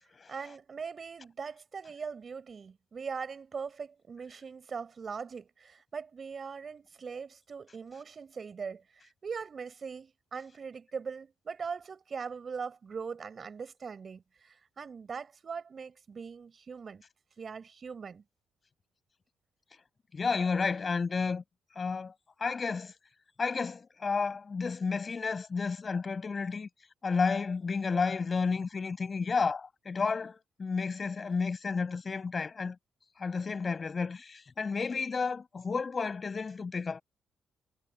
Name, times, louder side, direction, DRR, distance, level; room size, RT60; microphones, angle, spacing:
voice 1, 0.3-17.0 17.4-18.2, right 5 dB, 40° right, 5.2 m, -41 dB
voice 2, 20.1-21.4 21.8-22.1 22.4-22.9 23.4-26.7 27.0-32.8 33.2-37.0, left 5 dB, 35° left, 7.2 m, -31 dB
cardioid pair, 90°, 0 cm